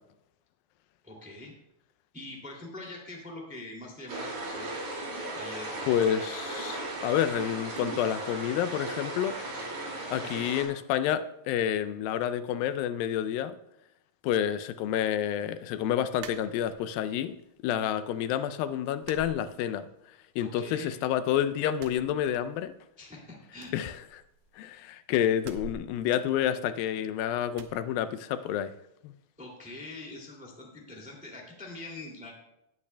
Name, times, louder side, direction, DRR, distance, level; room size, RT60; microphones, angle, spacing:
voice 1, 1.0-1.5 2.1-4.6 5.3-5.9 20.3-20.9 23.0-23.7 29.4-32.3, left 2 dB, 5° right, 1.3 m, -44 dB
sound 1, 4.1-10.6, right 2 dB, 55° right, 4.4 m, -36 dB
voice 2, 5.9-6.8 7.0-9.3 10.1-13.6 14.2-17.4 17.6-19.9 20.4-22.7 23.7-24.0 24.6-28.7 29.0-29.1, left 10 dB, 90° left, 2.4 m, -29 dB
sound 2, 16.2-17.1 17.5-18.2 18.4-18.6 19.0-20.1 20.4-21.3 21.7-22.8 23.1-23.2 23.5-24.7 25.4-27.0 27.5-27.8, right 5 dB, 75° right, 2.1 m, -48 dB
18.5 x 8.6 x 2.2 m
omnidirectional pair, 4.1 m